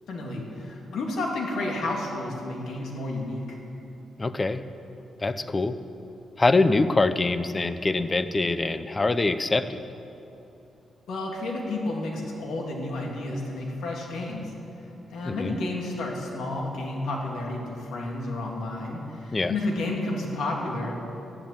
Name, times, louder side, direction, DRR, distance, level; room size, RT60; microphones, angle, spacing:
voice 1, 0.1-3.6 11.1-14.5 15.1-21.0, left 2 dB, 85° left, -1 dB, 2.8 m, -31 dB
voice 2, 4.2-4.6 5.2-5.8 6.4-9.8 15.2-15.5 19.3-19.5, left 3 dB, 20° left, 12 dB, 0.5 m, -24 dB
14.0 x 11.0 x 8.8 m, 2.9 s
wide cardioid pair, 170°, 0 cm